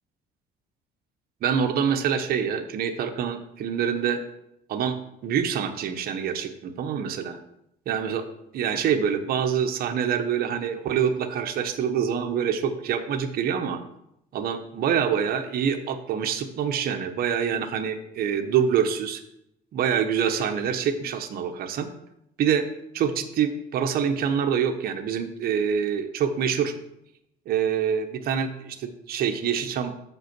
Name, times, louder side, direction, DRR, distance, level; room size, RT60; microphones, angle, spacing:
voice 1, 1.4-4.2 4.7-5.0 5.2-7.4 7.9-8.2 8.5-13.8 14.3-19.2 19.7-21.9 22.4-22.6 22.9-26.7 27.5-29.9, right 8 dB, 65° right, 5 dB, 0.9 m, -26 dB
7.1 x 5.7 x 6.0 m, 0.80 s
cardioid pair, 110°, 17 cm